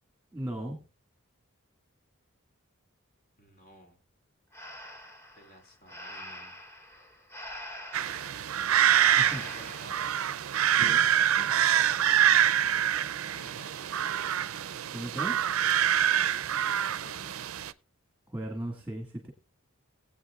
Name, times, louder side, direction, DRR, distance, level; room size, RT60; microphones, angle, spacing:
voice 1, 0.3-0.8 9.2-9.5 10.8-11.1 11.4-11.6 14.9-15.4 18.3-19.3, right 1 dB, 10° right, 2 dB, 1.9 m, -37 dB
voice 2, 3.4-4.0 5.4-6.6 8.9-10.3 13.3-14.1 16.1-16.7 17.0-17.5, equal, 45° left, 3 dB, 2.6 m, -54 dB
Breathing, 4.5-10.1, left 1 dB, 10° left, 1.8 m, -44 dB
sound 1, 7.9-17.7, right 10 dB, 75° right, 0.5 m, -26 dB
20.0 x 8.4 x 2.4 m, 0.33 s
head